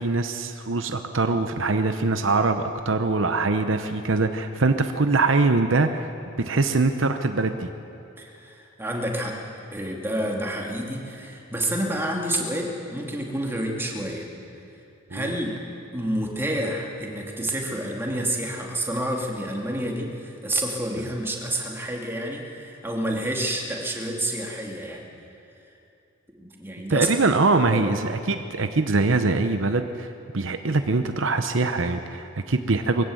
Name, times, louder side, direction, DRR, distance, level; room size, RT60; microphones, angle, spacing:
voice 1, 0.0-6.1 6.4-7.7 15.1-15.3 26.9-30.1 30.3-33.0, right 3 dB, 65° right, 8 dB, 0.8 m, -23 dB
voice 2, 8.2-9.4 9.7-14.3 15.1-25.0 26.4-27.1 27.5-28.0, right 1 dB, 10° right, -1 dB, 2.4 m, -29 dB
22.0 x 16.0 x 7.9 m, 2.7 s
head